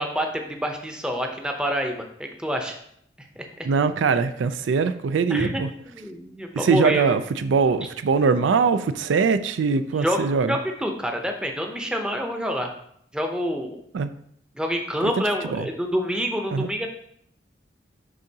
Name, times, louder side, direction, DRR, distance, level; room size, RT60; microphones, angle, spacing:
voice 1, 0.0-2.8 3.2-3.7 5.3-7.1 10.0-12.7 13.1-13.8 14.5-16.9, equal, 5° right, 3 dB, 0.6 m, -27 dB
voice 2, 3.6-5.7 6.5-10.6 13.9-14.1 15.0-15.1 15.4-15.7 16.5-16.7, right 5 dB, 90° right, 12 dB, 0.4 m, -22 dB
9.7 x 3.7 x 2.8 m, 0.70 s
head